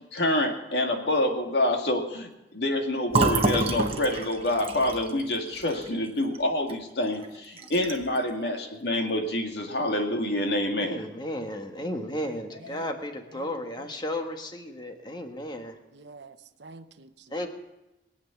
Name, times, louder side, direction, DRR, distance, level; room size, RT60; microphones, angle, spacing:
voice 1, 0.1-11.1 12.7-12.8, left 1 dB, 65° left, 3 dB, 2.1 m, -27 dB
Fill (with liquid), 3.1-6.8 7.1-7.3 7.6-8.2, right 3 dB, 30° right, 1.2 m, -28 dB
voice 2, 10.8-15.8 17.3-17.5, left 1 dB, 25° left, 5 dB, 1.4 m, -34 dB
voice 3, 12.2-12.9 13.3-13.9 15.9-17.4, right 3 dB, 75° right, 10 dB, 0.9 m, -49 dB
22.0 x 8.8 x 7.0 m, 0.96 s
head